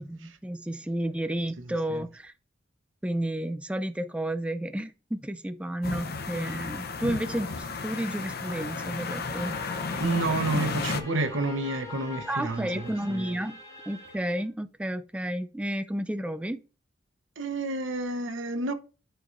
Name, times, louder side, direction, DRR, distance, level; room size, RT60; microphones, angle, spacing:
voice 1, 0.0-2.3 3.0-9.6 10.5-10.7 12.3-13.6 13.9-16.6, right 1 dB, 5° right, 0.4 m, -32 dB
voice 2, 1.6-2.0 10.0-13.4 17.4-18.7, right 2 dB, 90° right, 0.9 m, -30 dB
sound 1, 5.8-11.0, left 4 dB, 55° left, 0.8 m, -33 dB
sound 2, 9.2-14.5, left 2 dB, 20° left, 2.3 m, -44 dB
11.0 x 4.5 x 2.6 m
head